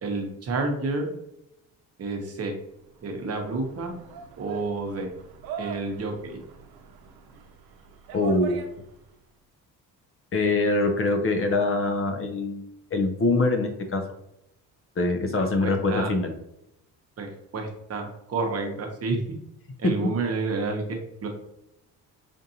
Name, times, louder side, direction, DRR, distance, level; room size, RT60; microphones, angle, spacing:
voice 1, 0.0-1.1 2.0-2.5 3.0-3.9 4.4-5.1 5.6-6.4 15.4-16.1 17.2-19.2 19.8-21.3, right 3 dB, 40° right, 3 dB, 0.9 m, -30 dB
sound 1, 2.8-9.2, right 7 dB, 80° right, 0.7 m, -43 dB
voice 2, 8.1-8.6 10.3-12.7 12.9-14.0 15.0-16.3, left 2 dB, 35° left, 5 dB, 0.6 m, -24 dB
5.2 x 2.5 x 2.8 m, 0.82 s
cardioid pair, 110°, 37 cm